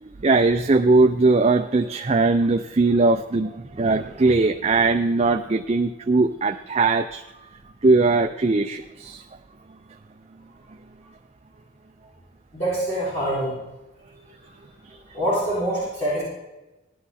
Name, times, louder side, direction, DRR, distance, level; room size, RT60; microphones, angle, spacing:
voice 1, 0.0-7.2 7.8-9.2, right 3 dB, 30° right, 6 dB, 0.5 m, -20 dB
voice 2, 12.5-13.5 14.9-16.2, right 1 dB, 35° left, -11 dB, 6.4 m, -25 dB
18.0 x 11.0 x 4.2 m, 1.0 s
head